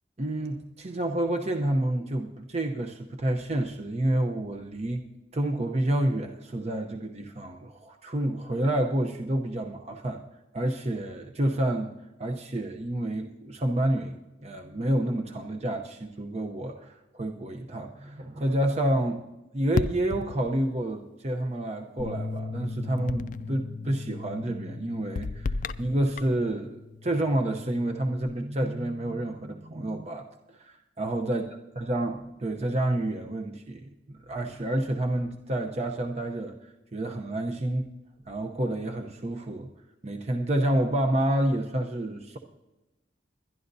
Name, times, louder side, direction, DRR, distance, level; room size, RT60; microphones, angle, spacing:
voice 1, 0.2-5.0 5.3-10.2 10.5-11.9 12.2-19.2 19.5-31.4 31.8-36.6 36.9-37.9 38.3-39.7 40.0-42.4, right 1 dB, 35° right, 3 dB, 0.8 m, -29 dB
sound 1, 19.7-20.8 23.1-23.6 25.2-26.4, left 4 dB, 45° left, 0.3 m, -32 dB
Bass guitar, 22.0-28.2, left 3 dB, 5° right, 1.4 m, -40 dB
22.5 x 11.0 x 2.7 m, 1.0 s
head